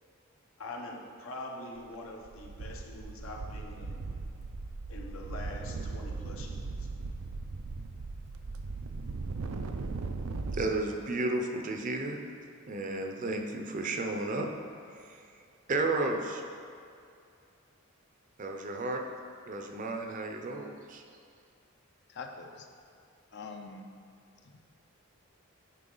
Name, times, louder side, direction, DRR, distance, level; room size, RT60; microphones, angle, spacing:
voice 1, 0.6-4.1 4.9-6.9, left 2 dB, 75° left, 0 dB, 1.0 m, -44 dB
sound 1, 1.9-2.0 2.3-10.7, right 3 dB, 85° right, 0.5 m, -38 dB
voice 2, 10.5-12.2 12.7-14.5 14.9-15.2 15.7-16.4 18.4-19.0 19.5-21.0, right 2 dB, 35° right, 3 dB, 0.6 m, -33 dB
voice 3, 22.1-22.7 23.3-23.8, left 4 dB, 50° left, 4 dB, 0.5 m, -43 dB
9.7 x 4.5 x 3.9 m, 2.4 s
head